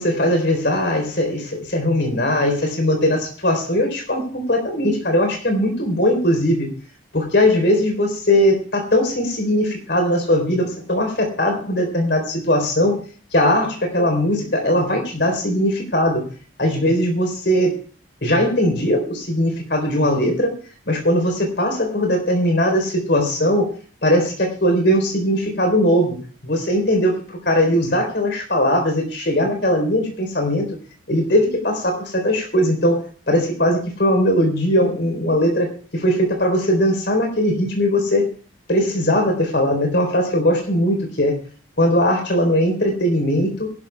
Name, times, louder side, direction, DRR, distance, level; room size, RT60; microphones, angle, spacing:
voice 1, 0.0-6.7 7.1-13.0 13.3-16.2 16.6-17.8 18.2-20.5 20.9-23.7 24.0-26.2 26.4-30.7 31.1-38.3 38.7-41.4 41.8-43.7, equal, 60° left, 3 dB, 4.0 m, -19 dB
22.5 x 12.0 x 2.3 m, 0.42 s
head